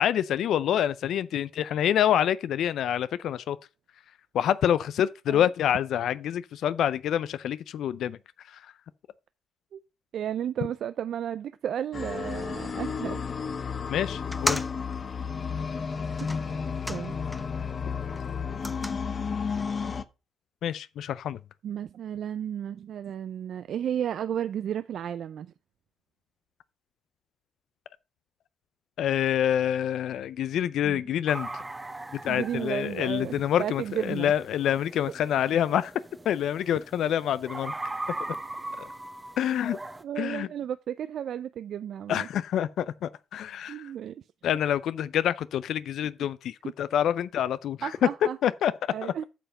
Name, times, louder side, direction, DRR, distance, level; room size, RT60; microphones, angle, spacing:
voice 1, 0.0-3.6 4.3-8.2 8.5-8.6 13.9-14.6 20.6-21.4 29.0-31.5 32.2-35.9 36.3-37.7 38.8-38.9 39.4-39.8 40.2-40.5 42.1-43.9 44.4-48.1 48.4-48.7 49.0-49.1, left 10 dB, 75° left, 0.4 m, -27 dB
voice 2, 10.1-13.2 16.9-17.2 21.6-25.5 30.8-31.0 32.3-34.3 35.0-35.1 40.0-42.3 43.7-44.2 47.8-48.4 48.9-49.2, right 9 dB, 65° right, 0.4 m, -33 dB
sound 1, 11.9-20.0, left 6 dB, 40° left, 0.8 m, -32 dB
sound 2, 14.2-17.7 18.0-20.0, left 1 dB, 10° left, 0.7 m, -37 dB
sound 3, 31.3-40.0, right 2 dB, 15° right, 0.9 m, -40 dB
8.4 x 5.7 x 5.1 m
cardioid pair, 90°, 0 cm